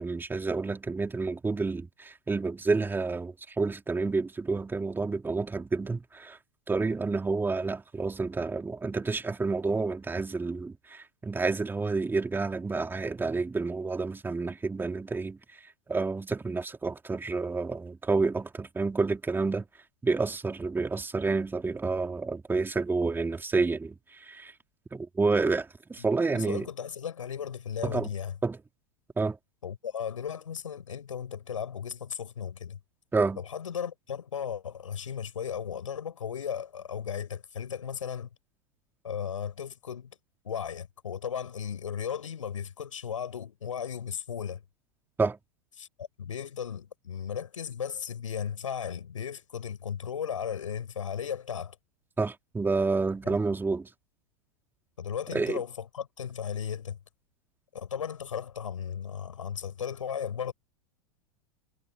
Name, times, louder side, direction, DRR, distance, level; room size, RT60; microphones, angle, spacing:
voice 1, 0.0-6.4 6.7-15.4 15.9-19.7 20.0-24.5 24.9-26.7 27.8-28.1 28.4-28.6 29.2-29.4 33.1-33.4 45.2-45.4 52.2-53.9 55.3-55.6, right 3 dB, 15° right, 3.6 m, -29 dB
voice 2, 26.3-28.4 29.6-32.8 33.4-38.3 39.0-40.2 40.4-44.6 45.8-51.8 53.2-53.4 55.0-57.0 57.7-60.5, left 8 dB, 85° left, 7.7 m, -36 dB
hypercardioid pair, 100°, 16 cm